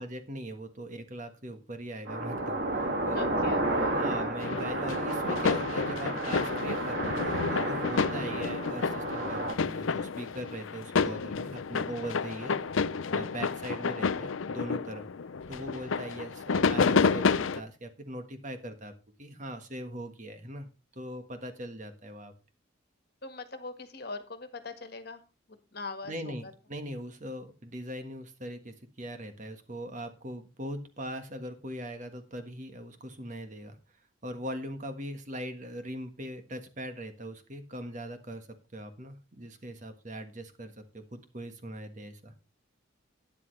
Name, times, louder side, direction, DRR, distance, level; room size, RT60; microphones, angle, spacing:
voice 1, 0.0-3.3 3.9-12.9 13.1-15.1 15.5-18.9 19.2-22.3 26.0-33.8 34.2-42.3, right 1 dB, 40° right, 7 dB, 1.4 m, -40 dB
sound 1, 2.1-9.5, right 1 dB, 55° right, 2.3 m, -31 dB
voice 2, 3.1-4.3 23.2-25.2 25.7-26.5, left 3 dB, 50° left, 9 dB, 1.6 m, -41 dB
sound 2, 4.4-17.6, left 5 dB, 75° left, 0.5 m, -30 dB
12.0 x 10.0 x 3.2 m, 0.31 s
head